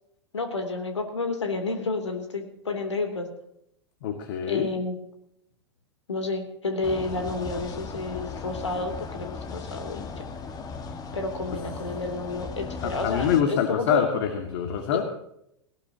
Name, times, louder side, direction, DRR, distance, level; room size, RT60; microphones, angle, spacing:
voice 1, 0.3-3.3 4.5-4.9 6.1-10.2 11.1-14.0, left 3 dB, 80° left, 5 dB, 3.0 m, -30 dB
voice 2, 4.0-4.7 12.8-15.0, left 8 dB, 55° left, 6 dB, 2.0 m, -25 dB
sound 1, 6.8-13.4, left 4 dB, 25° left, 1.7 m, -37 dB
18.5 x 17.5 x 2.9 m, 0.76 s
figure-of-eight pair, 100°, 15 cm